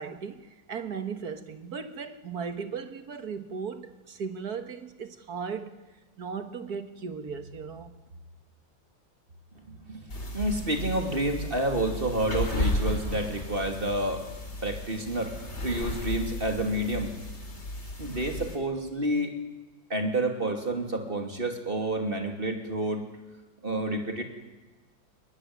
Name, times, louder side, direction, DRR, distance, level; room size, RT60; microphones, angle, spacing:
voice 1, 0.0-5.7 6.2-7.9, right 6 dB, 50° right, 2.1 m, -37 dB
voice 2, 9.7-10.0 10.3-14.3 14.6-17.1 18.0-19.3 19.9-23.1 23.6-24.2, right 1 dB, 25° right, 2.9 m, -29 dB
sound 1, 10.1-18.6, left 1 dB, 35° left, 3.8 m, -34 dB
22.5 x 21.0 x 9.6 m
omnidirectional pair, 2.1 m